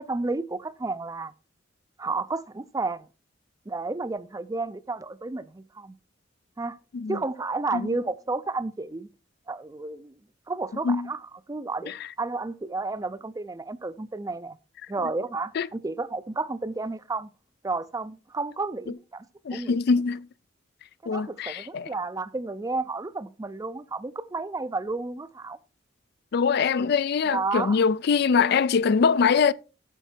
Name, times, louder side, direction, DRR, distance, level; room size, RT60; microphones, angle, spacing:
voice 1, 0.0-1.3 2.0-3.1 3.7-6.0 6.6-6.8 7.1-9.1 9.5-10.1 10.5-11.2 11.5-11.9 12.2-14.6 14.9-17.3 17.6-19.2 19.5-19.8 21.0-25.6 27.3-27.8, right 3 dB, 20° right, 0.4 m, -31 dB
voice 2, 19.4-20.3 21.1-21.9 26.3-29.5, left 5 dB, 55° left, 0.4 m, -23 dB
9.1 x 6.9 x 4.4 m
head